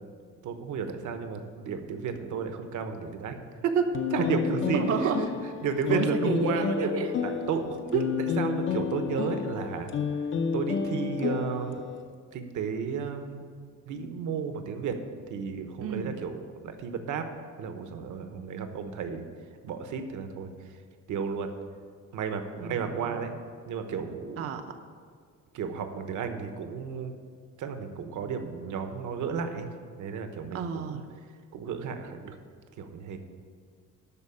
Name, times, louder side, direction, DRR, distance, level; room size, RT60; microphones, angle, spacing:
voice 1, 0.4-5.3 5.6-6.9 7.2-9.9 10.5-11.9 12.3-13.4 13.9-15.0 15.3-17.3 17.6-19.2 19.6-20.8 21.1-21.5 22.1-23.4 23.7-24.5 25.5-27.1 27.6-29.7 30.0-31.0 31.5-32.4 32.8-33.2, right 6 dB, 65° right, 7 dB, 1.1 m, -32 dB
sound 1, 3.9-12.0, left 6 dB, 40° left, 0.6 m, -30 dB
voice 2, 4.7-5.2 5.9-7.1 15.8-16.2 18.4-18.7 22.6-23.1 24.4-24.6 30.5-31.0, right 6 dB, 45° right, 6 dB, 0.7 m, -31 dB
12.5 x 4.5 x 8.6 m, 2.1 s
cardioid pair, 150°, 32 cm